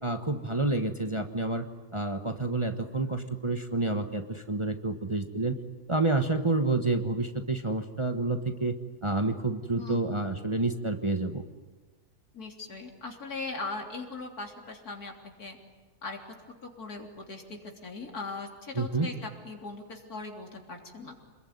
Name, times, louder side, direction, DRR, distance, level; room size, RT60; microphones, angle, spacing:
voice 1, 0.0-1.6 1.9-5.6 5.9-8.7 9.0-11.4 18.7-19.1, right 2 dB, 20° right, 6 dB, 1.2 m, -29 dB
voice 2, 12.3-15.1 15.4-15.6 16.0-16.2 16.6-21.1, left 3 dB, 75° left, 2 dB, 3.9 m, -39 dB
27.5 x 21.5 x 9.5 m, 1.4 s
omnidirectional pair, 1.6 m